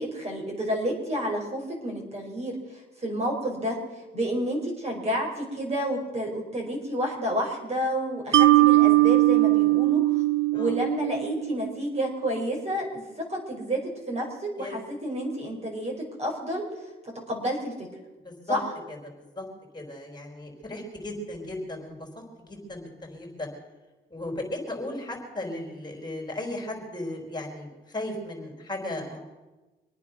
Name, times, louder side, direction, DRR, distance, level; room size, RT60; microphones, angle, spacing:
voice 1, 0.0-2.5 3.0-3.8 4.1-10.2 10.5-13.0 13.3-13.8 14.1-16.6 17.3-17.7 18.5-18.6, equal, 30° right, 0 dB, 5.1 m, -30 dB
Mallet percussion, 8.3-11.6, right 18 dB, 70° right, 0.6 m, -20 dB
voice 2, 18.2-18.6 18.9-19.0 19.3-19.5 19.7-22.1 22.4-23.5 24.1-29.2, left 1 dB, 20° left, 1 dB, 4.6 m, -36 dB
25.5 x 9.3 x 6.1 m, 1.2 s
cardioid pair, 90°, 20 cm